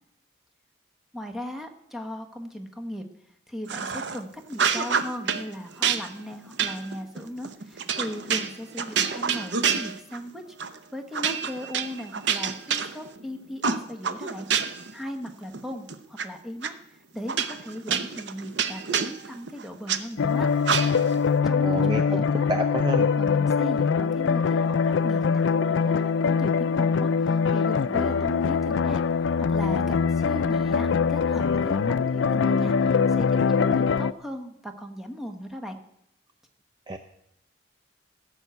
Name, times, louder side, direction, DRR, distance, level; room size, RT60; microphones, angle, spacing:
voice 1, 1.1-3.1 3.5-10.4 10.9-20.5 21.1-22.4 23.2-35.8, equal, ahead, 5 dB, 1.1 m, -37 dB
sound 1, 3.7-4.2 4.5-5.4 5.8-10.3 10.6-10.8 11.1-13.2 13.6-14.9 15.3-16.2 16.6-16.7 17.3-20.0 20.6-21.2, right 6 dB, 65° right, 0.8 m, -27 dB
sound 2, 20.2-34.1, left 5 dB, 70° left, 0.4 m, -23 dB
voice 2, 21.6-23.1 36.9-37.0, right 1 dB, 20° right, 7 dB, 0.5 m, -29 dB
15.0 x 6.3 x 8.0 m, 0.77 s
head